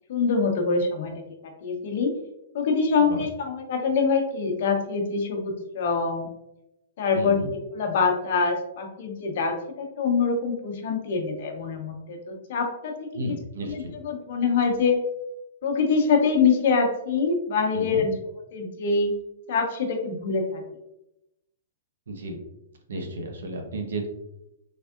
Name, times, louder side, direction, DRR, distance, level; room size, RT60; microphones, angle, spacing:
voice 1, 0.1-1.1 1.4-2.1 2.5-6.3 7.0-7.4 7.7-13.1 13.6-15.0 15.6-18.1 18.5-19.1 19.5-20.6, left 5 dB, 55° left, 3 dB, 0.8 m, -24 dB
voice 2, 7.1-7.5 13.1-13.9 17.7-18.0 22.1-22.4 22.9-24.1, right 2 dB, 85° right, 3 dB, 0.9 m, -33 dB
3.6 x 3.2 x 2.4 m, 0.88 s
hypercardioid pair, 160°, 0 cm